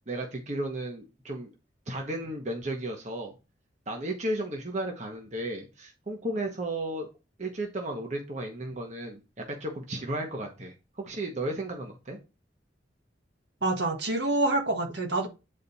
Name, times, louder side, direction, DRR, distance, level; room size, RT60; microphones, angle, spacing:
voice 1, 0.1-1.5 1.9-3.3 3.9-7.1 7.4-9.2 9.5-12.2, right 1 dB, 40° right, 1.2 m, -34 dB
voice 2, 13.6-15.3, right 2 dB, 65° right, 1.5 m, -26 dB
8.8 x 4.1 x 4.1 m
head